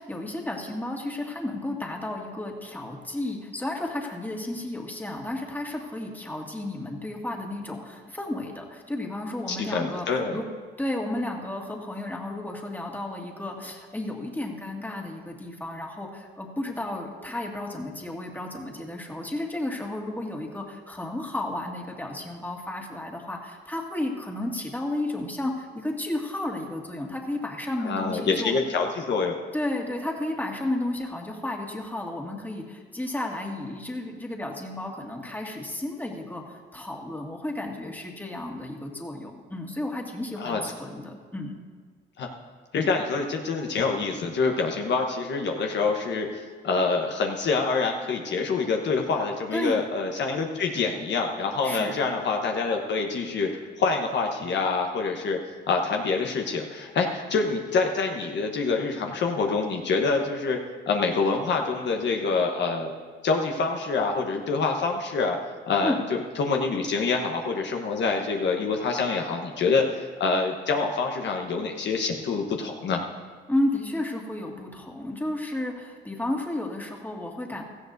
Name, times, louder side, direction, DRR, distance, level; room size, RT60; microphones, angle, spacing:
voice 1, 0.0-10.4 10.8-28.5 29.5-41.5 49.5-49.8 51.6-52.0 65.8-66.0 73.5-77.6, left 1 dB, 10° left, 0 dB, 1.9 m, -32 dB
voice 2, 9.5-10.4 27.8-29.4 40.4-40.6 42.2-42.3 42.7-53.5 53.8-55.4 55.7-60.6 60.9-62.9 63.2-65.4 65.7-73.0, left 4 dB, 60° left, 2 dB, 1.1 m, -26 dB
17.0 x 13.5 x 2.6 m, 1.5 s
cardioid pair, 90°, 20 cm